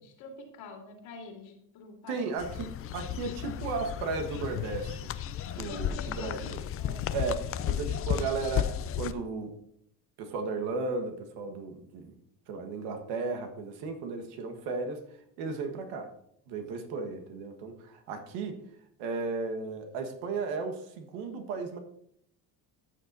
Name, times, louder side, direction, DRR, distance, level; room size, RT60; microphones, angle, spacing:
voice 1, 0.2-2.2 5.5-6.4 6.8-7.0, left 3 dB, 75° left, 1 dB, 2.8 m, -46 dB
voice 2, 2.1-5.1 5.5-6.6 7.1-7.4 7.7-9.5 10.2-12.2 12.5-15.0 15.4-16.1 16.5-18.6 19.0-21.8, right 4 dB, 80° right, 6 dB, 1.5 m, -35 dB
sound 1, 2.4-9.1, left 10 dB, 35° left, 0.4 m, -33 dB
13.5 x 6.7 x 2.7 m, 0.70 s
cardioid pair, 110°, 41 cm